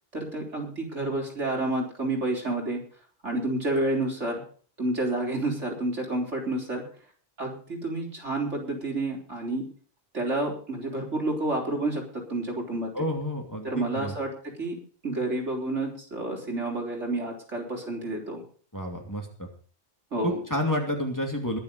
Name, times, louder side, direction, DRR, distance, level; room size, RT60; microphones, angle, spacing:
voice 1, 0.1-2.8 3.2-4.3 4.8-6.8 7.4-9.6 10.1-13.1 13.6-14.3 14.6-14.8 15.0-18.4 20.1-20.4, right 2 dB, 75° right, -1 dB, 4.5 m, -29 dB
voice 2, 12.9-14.1 18.7-19.5 20.2-21.6, left 1 dB, 15° left, 1 dB, 2.6 m, -30 dB
21.5 x 7.3 x 5.2 m, 0.43 s
omnidirectional pair, 1.2 m